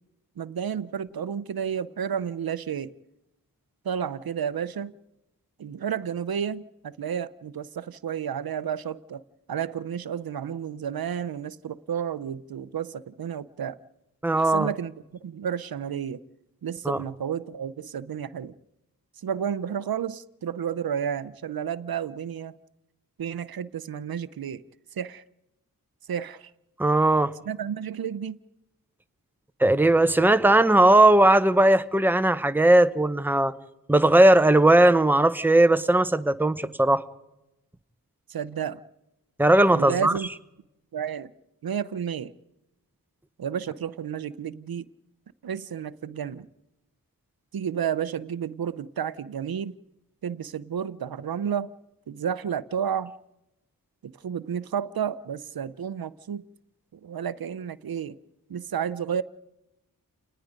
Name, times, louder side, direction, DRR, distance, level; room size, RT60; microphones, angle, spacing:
voice 1, 0.4-2.9 3.8-4.9 5.6-9.2 9.5-13.8 14.3-14.9 15.2-16.2 16.6-18.5 19.2-22.6 23.2-24.6 25.0-25.2 26.1-26.5 27.5-28.4 38.3-38.8 39.7-40.3 40.9-41.3 41.6-42.3 43.4-44.8 45.4-46.5 47.5-49.7 50.2-51.7 52.1-53.1 54.0-56.5 56.9-58.2 58.5-59.2, right 8 dB, 80° right, 0.7 m, -31 dB
voice 2, 14.2-14.7 16.8-17.0 26.8-27.3 29.6-33.5 33.9-37.0 39.4-40.1, right 1 dB, 5° right, 0.9 m, -18 dB
29.0 x 19.5 x 5.2 m
wide cardioid pair, 105°, 36 cm